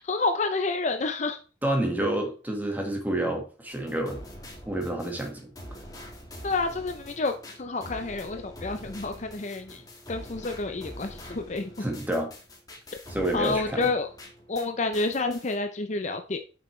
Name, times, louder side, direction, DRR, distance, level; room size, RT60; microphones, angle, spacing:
voice 1, 0.0-1.4 6.4-7.3 7.6-9.8 10.1-11.9 13.3-14.1 14.5-16.4, left 3 dB, 40° left, 7 dB, 0.6 m, -29 dB
voice 2, 1.6-4.2 4.7-5.4 11.8-12.3 13.1-13.9, right 1 dB, 10° right, 2 dB, 1.7 m, -28 dB
sound 1, 3.7-14.7 14.9-15.5, equal, 20° left, 1.8 m, -44 dB
8.4 x 6.1 x 3.2 m, 0.36 s
head